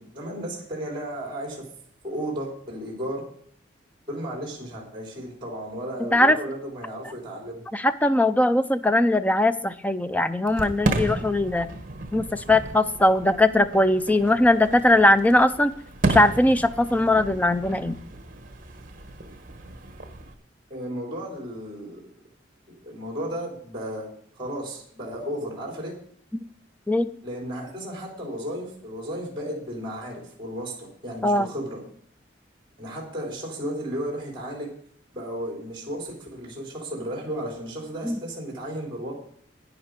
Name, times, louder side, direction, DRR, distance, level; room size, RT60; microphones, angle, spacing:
voice 1, 0.0-1.6 2.0-3.2 4.1-7.7 20.7-22.0 22.7-24.1 24.4-26.0 27.2-31.8 32.8-34.7 35.1-39.1, equal, 25° right, -1 dB, 3.6 m, -34 dB
voice 2, 6.0-6.4 7.7-11.7 12.1-15.7 16.0-18.0 26.9-27.1 31.2-31.5 38.0-38.2, left 1 dB, 10° left, 11 dB, 0.4 m, -20 dB
Fireworks, 10.5-20.3, right 2 dB, 45° right, 1.4 m, -33 dB
11.0 x 10.0 x 4.8 m, 0.63 s
head